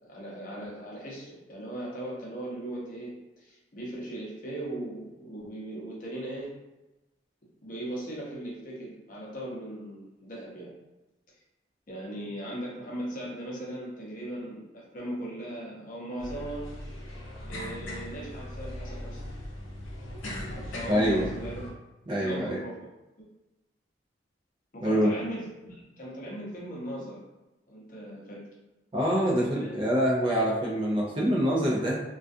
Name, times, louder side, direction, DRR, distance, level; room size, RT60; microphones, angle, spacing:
voice 1, 0.0-6.5 7.6-10.7 11.9-16.7 17.4-19.2 20.5-21.6 22.2-22.8 24.7-27.2 27.7-28.4 29.3-29.8, right 1 dB, 45° left, -5 dB, 0.7 m, -38 dB
sound 1, 16.2-21.7, left 1 dB, 90° left, 0.6 m, -39 dB
voice 2, 20.9-21.3 22.1-22.6 24.8-25.1 28.9-32.0, equal, 25° right, -4 dB, 0.3 m, -25 dB
2.3 x 2.2 x 2.5 m, 1.0 s
head